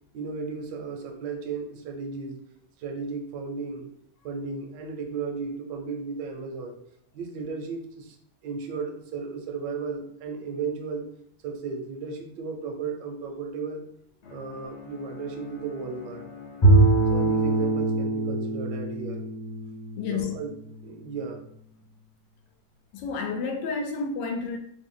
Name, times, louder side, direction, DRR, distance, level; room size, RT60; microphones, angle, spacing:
voice 1, 0.1-2.4 2.8-3.9 4.2-6.8 7.1-8.2 8.4-11.1 11.4-13.8 14.3-16.2 17.1-19.2 20.1-20.5 20.8-21.4, right 4 dB, 80° right, 2 dB, 1.2 m, -34 dB
Bowed string instrument, 14.2-18.4, left 6 dB, 65° left, 0.6 m, -45 dB
Bowed string instrument 2, 16.6-20.9, right 2 dB, 35° left, 0.9 m, -23 dB
voice 2, 20.0-20.3 22.9-24.6, left 4 dB, 85° left, 4 dB, 1.3 m, -30 dB
3.1 x 2.1 x 3.7 m, 0.70 s
omnidirectional pair, 1.9 m